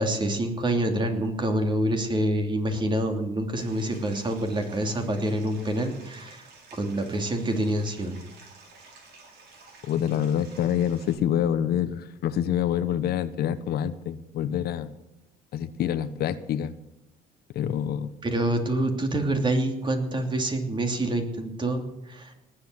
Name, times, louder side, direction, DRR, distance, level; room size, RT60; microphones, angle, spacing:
voice 1, 0.0-6.4 6.7-8.2 18.2-22.3, right 1 dB, 30° right, 5 dB, 3.0 m, -27 dB
Stream, 3.6-11.1, right 4 dB, 70° right, 5.6 m, -51 dB
voice 2, 9.9-14.9 15.5-16.7 17.5-18.1, left 10 dB, 70° left, 12 dB, 1.1 m, -26 dB
19.0 x 8.2 x 8.0 m, 0.95 s
cardioid pair, 110°, 17 cm